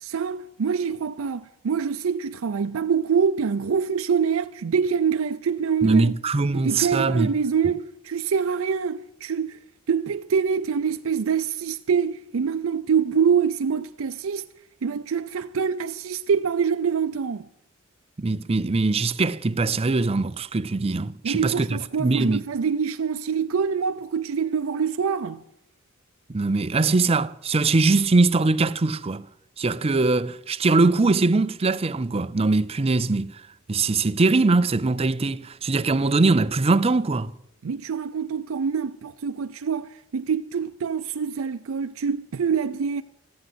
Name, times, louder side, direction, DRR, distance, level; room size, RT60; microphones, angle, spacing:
voice 1, 0.0-6.1 6.5-9.6 9.9-14.5 14.8-17.4 21.2-25.4 37.6-43.0, right 6 dB, 85° right, 0.5 m, -25 dB
voice 2, 5.8-7.3 18.2-22.4 26.3-29.2 29.6-33.3 33.7-37.3, right 3 dB, 30° right, 0.5 m, -22 dB
14.5 x 10.5 x 7.8 m
head